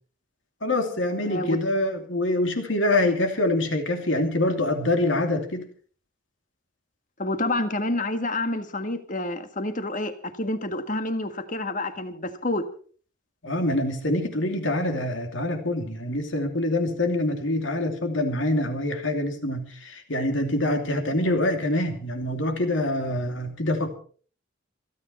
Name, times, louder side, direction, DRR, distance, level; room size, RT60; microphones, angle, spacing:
voice 1, 0.6-5.7 13.4-23.9, left 1 dB, 70° left, 5 dB, 2.8 m, -25 dB
voice 2, 1.2-1.6 7.2-12.6, left 2 dB, 40° left, 8 dB, 1.7 m, -28 dB
28.0 x 9.7 x 4.3 m, 0.43 s
head